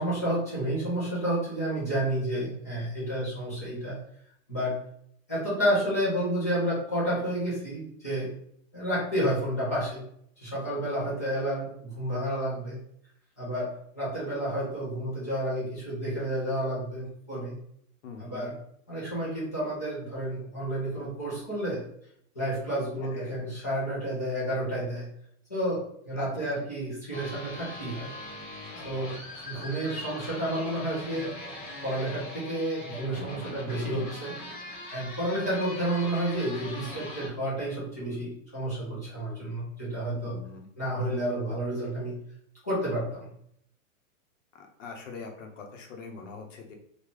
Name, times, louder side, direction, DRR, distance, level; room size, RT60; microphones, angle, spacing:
voice 1, 0.0-4.0 4.5-4.8 5.3-8.3 8.7-10.0 10.4-12.8 13.4-13.7 13.9-17.5 18.2-18.5 18.9-21.8 22.3-25.1 25.5-28.1 28.8-29.1 29.4-31.3 31.8-34.3 34.9-40.4 40.8-42.1 42.6-43.2, right 1 dB, 15° left, -9 dB, 0.4 m, -30 dB
voice 2, 18.0-18.5 23.0-23.3 26.2-26.6 29.5-29.6 40.1-40.7 44.5-46.7, left 4 dB, 60° left, 3 dB, 0.9 m, -43 dB
sound 1, 27.1-37.3, left 1 dB, 35° left, 0.7 m, -41 dB
3.3 x 2.3 x 3.7 m, 0.69 s
supercardioid pair, 175°, 42 cm